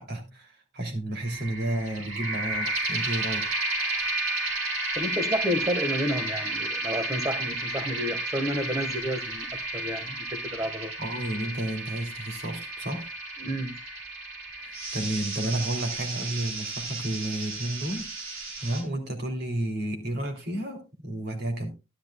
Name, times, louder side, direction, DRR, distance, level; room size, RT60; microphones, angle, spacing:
voice 1, 0.0-3.5 11.0-13.1 14.6-21.7, right 1 dB, 55° right, 3.0 m, -32 dB
sound 1, 1.2-18.8, right 2 dB, 85° right, 4.4 m, -32 dB
voice 2, 4.9-10.9 13.4-13.8, equal, 15° right, 1.4 m, -30 dB
13.5 x 11.5 x 2.3 m
head